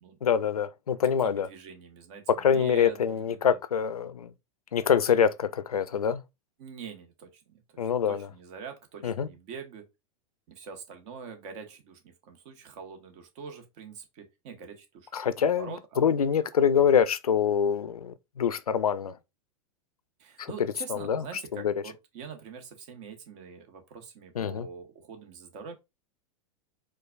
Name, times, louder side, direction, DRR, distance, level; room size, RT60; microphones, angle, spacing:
voice 1, 0.2-1.5 2.4-4.3 4.7-6.2 7.8-8.3 9.0-9.3 15.1-19.2 20.4-20.5 20.9-21.2 21.5-21.7 24.4-24.7, left 7 dB, 90° left, 0.4 m, -25 dB
voice 2, 1.2-3.6 6.6-9.8 10.5-16.0 16.5-16.8 20.2-25.7, right 6 dB, 50° right, 1.1 m, -45 dB
4.5 x 2.3 x 2.3 m
hypercardioid pair, 100°, 18 cm